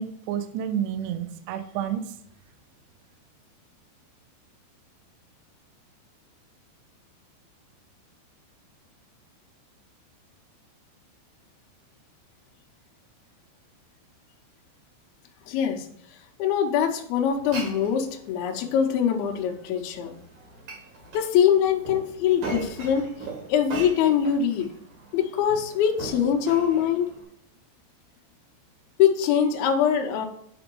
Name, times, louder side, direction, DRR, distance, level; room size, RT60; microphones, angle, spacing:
voice 1, 0.0-2.1, right 9 dB, 85° right, 9 dB, 2.5 m, -30 dB
voice 2, 15.5-15.9 16.4-20.1 21.1-23.1 23.5-24.7 25.1-27.1 29.0-30.3, left 8 dB, 75° left, 2 dB, 2.3 m, -23 dB
Glass, 17.3-27.2, right 3 dB, 50° right, 2.7 m, -40 dB
9.9 x 3.5 x 4.6 m, 0.71 s
omnidirectional pair, 5.5 m